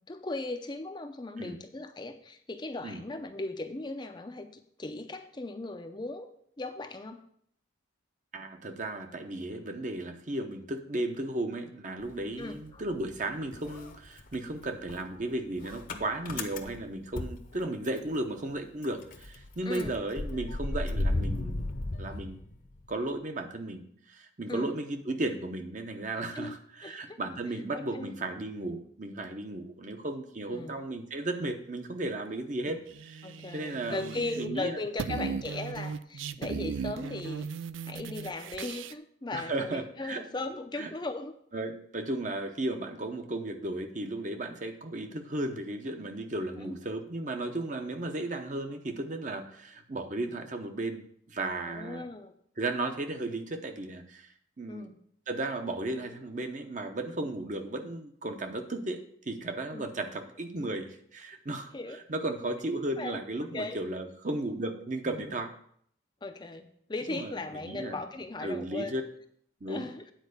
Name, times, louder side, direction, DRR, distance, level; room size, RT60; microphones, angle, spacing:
voice 1, 0.1-6.3 6.6-7.2 12.4-12.8 19.7-19.9 24.5-24.7 26.4-26.6 26.8-27.2 27.7-28.2 30.5-30.8 32.7-32.8 33.2-37.5 37.8-41.4 46.6-46.8 51.7-52.3 54.7-55.0 59.7-59.9 61.7-62.0 63.0-63.8 65.1-65.3 66.2-69.0 69.7-70.0, left 2 dB, 25° left, 7 dB, 0.5 m, -38 dB
voice 2, 8.3-21.6 22.0-22.4 22.9-33.3 33.5-34.8 35.1-35.4 39.3-40.2 40.7-40.9 41.5-52.1 52.6-54.3 54.6-54.9 55.3-59.0 59.3-65.5 67.1-67.3 67.6-68.0 68.4-69.0 69.6-69.9, right 2 dB, 40° right, 5 dB, 0.9 m, -35 dB
Motor vehicle (road) / Engine starting, 12.0-13.2 13.5-18.2 18.5-18.6 18.8-22.9, left 2 dB, 45° left, 0.8 m, -35 dB
sound 1, 32.9-34.6 34.8-38.9, right 6 dB, 85° right, 0.4 m, -37 dB
9.1 x 4.6 x 6.5 m, 0.65 s
head